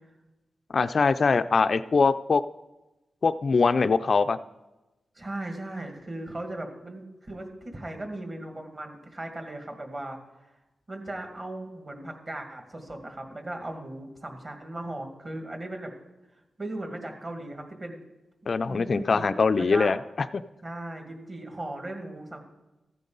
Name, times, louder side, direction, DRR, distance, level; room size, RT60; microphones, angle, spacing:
voice 1, 0.7-2.4 3.2-4.4 18.5-20.0, left 4 dB, 50° left, 11 dB, 0.3 m, -22 dB
voice 2, 5.2-10.2 10.9-15.9 16.3-18.0 18.7-19.3 19.6-19.9 20.6-22.4, right 1 dB, 35° right, 4 dB, 1.9 m, -37 dB
15.0 x 9.3 x 3.9 m, 1.0 s
wide cardioid pair, 110°, 0 cm